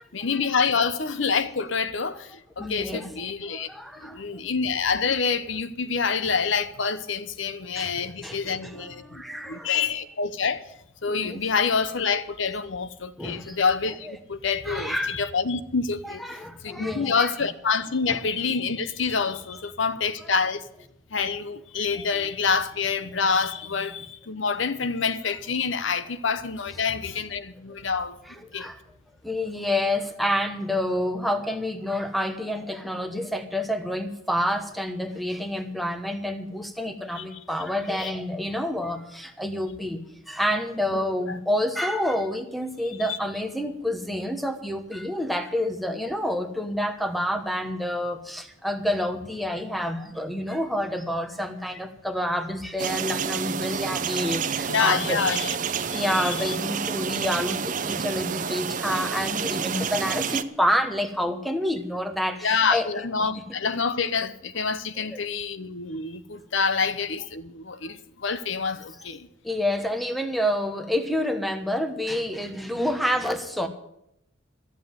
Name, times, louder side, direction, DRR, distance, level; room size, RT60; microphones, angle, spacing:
voice 1, 0.1-3.7 4.0-10.6 11.0-16.2 16.6-20.7 21.1-28.2 28.5-28.7 37.2-37.4 38.0-38.1 40.9-41.4 43.1-43.2 54.5-55.6 55.9-56.6 62.4-69.3, left 5 dB, 70° left, 0.8 m, -27 dB
voice 2, 2.6-4.2 7.8-9.7 11.2-11.4 13.2-13.6 14.1-14.2 14.6-15.2 16.0-17.3 18.1-18.2 28.5-28.8 29.2-55.2 55.9-62.9 65.0-65.2 69.4-73.7, left 1 dB, ahead, 1.1 m, -28 dB
sound 1, 52.8-60.4, right 6 dB, 40° right, 0.6 m, -29 dB
13.5 x 7.4 x 9.4 m
head